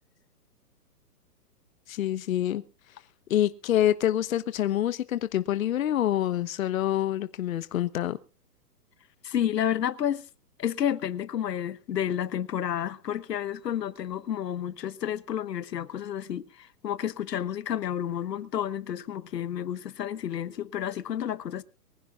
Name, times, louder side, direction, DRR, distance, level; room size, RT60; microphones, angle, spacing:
voice 1, 1.9-2.6 3.3-8.2, left 12 dB, 55° left, 1.1 m, -26 dB
voice 2, 9.2-10.3 10.6-21.6, left 10 dB, 85° left, 1.3 m, -30 dB
24.0 x 15.5 x 2.4 m
hypercardioid pair, 160°, 48 cm